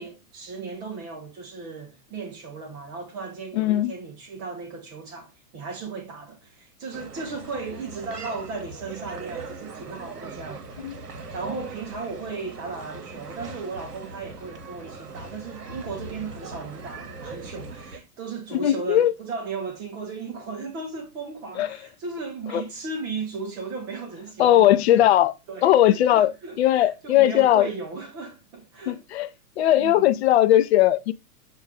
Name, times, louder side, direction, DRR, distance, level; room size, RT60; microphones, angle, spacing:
voice 1, 0.0-11.0 11.3-24.8 25.5-26.6 27.0-29.0 29.7-30.1, right 4 dB, 10° right, 0.3 m, -36 dB
voice 2, 3.6-3.9 10.8-11.0 18.5-19.1 21.6-21.8 22.5-22.6 24.4-25.3 25.6-26.3 26.6-27.7 28.9-29.3 29.6-31.1, left 12 dB, 45° left, 0.5 m, -19 dB
sound 1, 6.9-18.0, right 3 dB, 85° right, 0.8 m, -40 dB
6.1 x 2.3 x 3.4 m
figure-of-eight pair, 110°, 46 cm